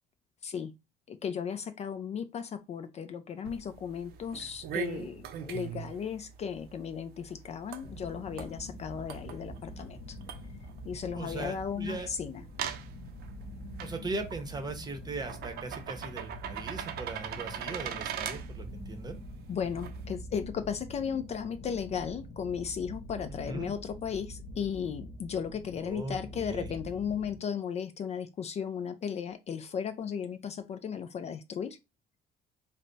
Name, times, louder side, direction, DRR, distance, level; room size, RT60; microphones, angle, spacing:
voice 1, 1.1-10.2 10.8-12.4 19.5-31.8, left 7 dB, 40° left, 0.4 m, -35 dB
sound 1, 3.4-20.1, right 8 dB, 70° right, 0.5 m, -42 dB
sound 2, 7.8-27.4, equal, 80° left, 0.8 m, -45 dB
voice 2, 11.1-12.1 13.8-19.2 23.5-23.7 25.8-26.7, right 3 dB, 25° right, 0.8 m, -39 dB
3.3 x 2.1 x 3.9 m
cardioid pair, 110°, 17 cm